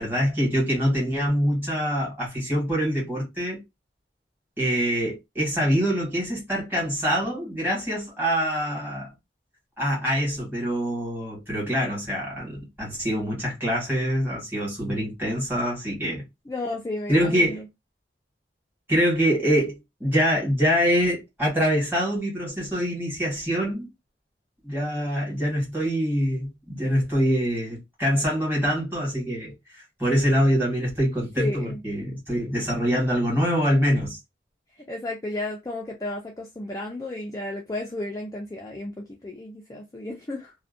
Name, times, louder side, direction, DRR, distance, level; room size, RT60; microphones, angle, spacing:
voice 1, 0.0-3.6 4.6-9.1 9.8-16.2 17.1-17.6 18.9-23.9 24.6-34.2, equal, 10° right, 1.3 m, -25 dB
voice 2, 16.5-17.7 31.4-31.8 34.9-40.5, left 2 dB, 20° left, 0.3 m, -33 dB
2.5 x 2.1 x 2.5 m
head